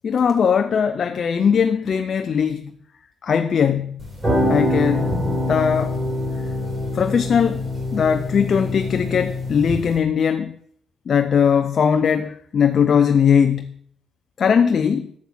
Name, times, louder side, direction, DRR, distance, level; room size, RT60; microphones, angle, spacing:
voice 1, 0.0-2.7 3.2-4.1 4.5-5.1 5.5-6.0 6.9-10.5 11.1-13.7 14.4-15.1, left 7 dB, 50° left, 0.5 m, -19 dB
sound 1, 4.0-10.0, left 1 dB, 20° right, 4.4 m, -24 dB
8.0 x 7.3 x 6.2 m
cardioid pair, 90°, 0 cm